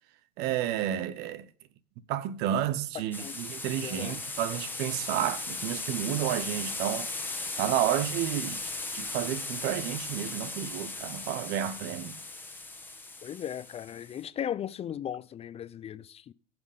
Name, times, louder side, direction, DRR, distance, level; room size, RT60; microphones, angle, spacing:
voice 1, 0.4-1.5 2.1-7.1 7.6-12.1, right 11 dB, 55° right, 1.0 m, -31 dB
voice 2, 2.9-3.4 3.8-4.2 13.2-16.3, left 9 dB, 30° left, 0.6 m, -37 dB
sound 1, 3.1-14.2, left 3 dB, 10° left, 1.7 m, -37 dB
15.0 x 6.1 x 5.2 m
hypercardioid pair, 80°, 20 cm